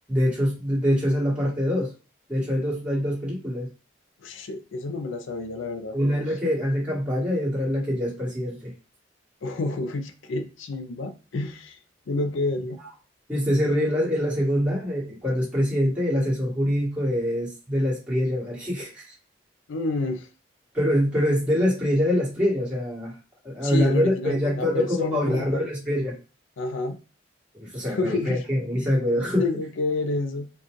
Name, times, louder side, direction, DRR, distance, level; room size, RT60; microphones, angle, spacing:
voice 1, 0.1-1.9 2.3-3.7 5.9-8.7 13.3-19.1 20.7-23.2 23.4-26.1 27.6-29.4, equal, 5° right, -7 dB, 1.8 m, -24 dB
voice 2, 4.2-6.0 6.3-6.4 9.4-11.8 12.1-12.8 19.7-20.3 23.6-25.6 26.6-27.0 27.9-28.4 28.8-28.9 29.4-30.5, left 2 dB, 80° left, 7 dB, 0.5 m, -29 dB
4.6 x 2.3 x 3.1 m, 0.34 s
head